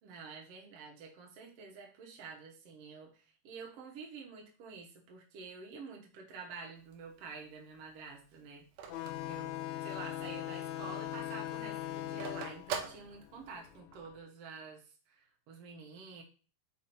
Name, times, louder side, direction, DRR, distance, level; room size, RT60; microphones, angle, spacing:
voice 1, 0.0-8.6 9.2-16.2, right 4 dB, 60° right, 0 dB, 1.9 m, -49 dB
Telephone, 6.8-10.2 10.6-10.7 10.9-13.8, right 7 dB, 75° right, 2.3 m, -43 dB
sound 1, 8.9-14.1, left 13 dB, 85° left, 1.6 m, -41 dB
5.1 x 5.1 x 4.2 m, 0.38 s
omnidirectional pair, 3.9 m